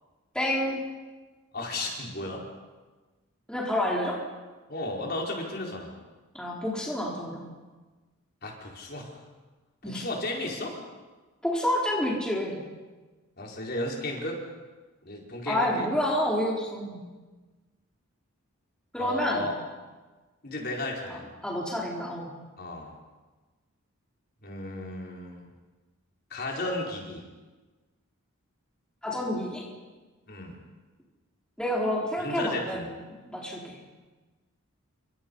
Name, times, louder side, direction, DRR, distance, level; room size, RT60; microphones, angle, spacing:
voice 1, 0.3-0.8 3.5-4.2 6.4-7.4 9.8-10.1 11.4-12.6 15.5-17.1 18.9-19.4 21.4-22.3 29.0-29.7 31.6-32.9 33.2-33.8, left 1 dB, 5° left, -3 dB, 4.5 m, -28 dB
voice 2, 1.5-2.5 4.7-5.9 8.4-9.2 9.8-10.8 13.4-14.4 15.0-15.9 19.0-19.6 20.4-21.3 22.6-22.9 24.4-25.5 26.3-27.2 30.3-30.6 32.2-32.9, left 1 dB, 45° left, -1 dB, 5.2 m, -34 dB
29.5 x 26.5 x 5.7 m, 1.3 s
head